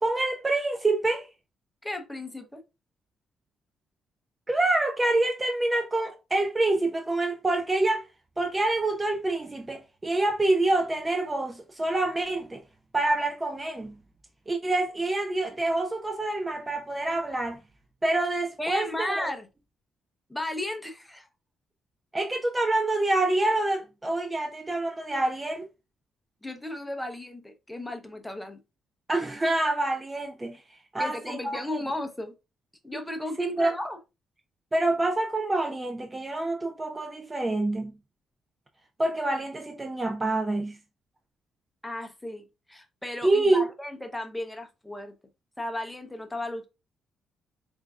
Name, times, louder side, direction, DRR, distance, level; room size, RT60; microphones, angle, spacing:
voice 1, 0.0-1.3 4.5-8.1 8.4-12.6 12.9-13.9 14.5-17.6 18.0-19.4 22.1-25.7 29.1-30.6 30.9-31.8 33.4-33.7 34.7-37.9 39.0-40.8 43.2-43.6, right 2 dB, 20° right, 0.4 m, -26 dB
voice 2, 1.8-2.6 18.6-19.5 20.3-21.3 26.4-28.6 31.0-32.3 32.8-34.0 41.8-45.1 45.6-46.7, left 1 dB, 10° left, 0.7 m, -35 dB
4.3 x 2.6 x 2.3 m
cardioid pair, 90°, 0 cm